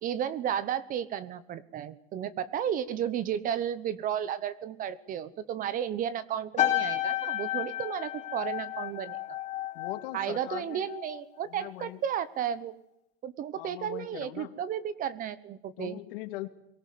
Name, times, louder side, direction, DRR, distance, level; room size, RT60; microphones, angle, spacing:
voice 1, 0.0-9.2 10.1-12.7 13.2-16.0, right 9 dB, 25° right, 17 dB, 1.1 m, -33 dB
sound 1, 6.6-11.2 11.5-11.9, left 13 dB, 25° left, 3.0 m, -32 dB
voice 2, 9.7-10.9 11.4-12.0 13.5-14.5 15.8-16.5, left 16 dB, 65° left, 9 dB, 2.6 m, -40 dB
22.5 x 18.0 x 9.5 m, 0.79 s
supercardioid pair, 160°, 30 cm